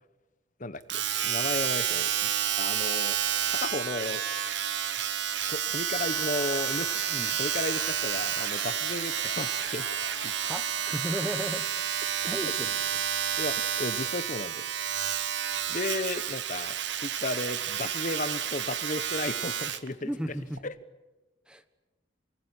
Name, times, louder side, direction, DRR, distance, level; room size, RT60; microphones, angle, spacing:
voice 1, 0.6-2.3 2.6-3.2 3.5-4.2 5.5-6.9 7.4-9.9 10.2-10.3 12.4-12.5 13.4-14.7 15.7-20.1 20.6-20.7, left 2 dB, 40° left, 13 dB, 1.1 m, -34 dB
Domestic sounds home sounds, 0.9-19.9 20.6-20.7, right 9 dB, 65° right, 1.3 m, -30 dB
Laughter / Crowd, 5.9-12.0, left 5 dB, 85° left, 2.3 m, -45 dB
voice 2, 10.4-13.0 20.0-20.6 21.5-21.6, equal, 5° right, 10 dB, 1.3 m, -36 dB
29.0 x 20.0 x 9.9 m, 1.1 s
head